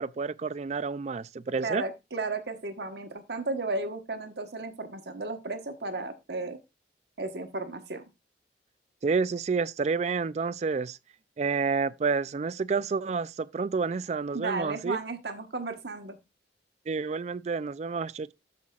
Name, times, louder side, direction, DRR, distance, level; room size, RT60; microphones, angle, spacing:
voice 1, 0.0-1.8 9.0-11.0 11.4-15.0 16.9-18.3, right 4 dB, 40° right, 0.3 m, -29 dB
voice 2, 1.6-6.6 7.2-8.0 14.3-16.2, right 3 dB, 65° right, 1.2 m, -34 dB
13.5 x 5.8 x 2.4 m
head